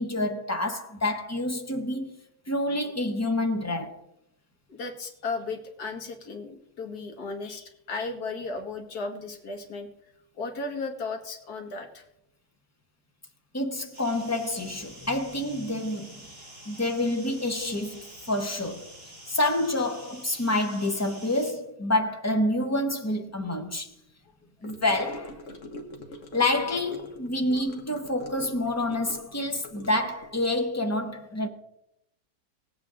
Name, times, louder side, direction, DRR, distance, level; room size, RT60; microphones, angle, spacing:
voice 1, 0.0-2.2 2.5-4.0 13.5-16.3 16.7-18.9 19.3-23.9 24.6-25.4 26.3-31.5, left 1 dB, 25° left, 0.3 m, -28 dB
voice 2, 4.7-9.9 10.3-12.1 24.6-24.7, left 3 dB, 65° left, 1.8 m, -35 dB
sound 1, 13.9-21.5, right 1 dB, 30° right, 5.4 m, -48 dB
Gurgling / Car passing by / Sink (filling or washing), 24.6-30.3, left 2 dB, 50° left, 1.5 m, -44 dB
19.0 x 8.2 x 3.7 m
omnidirectional pair, 1.8 m